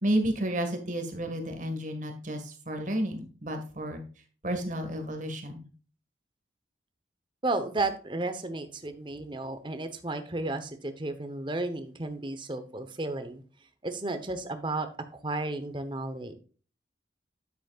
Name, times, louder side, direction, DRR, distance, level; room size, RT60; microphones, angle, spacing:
voice 1, 0.0-4.0 4.4-5.7, right 1 dB, 45° right, 5 dB, 1.8 m, -31 dB
voice 2, 7.4-13.4 13.8-14.9 15.1-16.3, right 2 dB, 25° right, 9 dB, 1.0 m, -33 dB
9.7 x 8.3 x 2.4 m, 0.39 s
head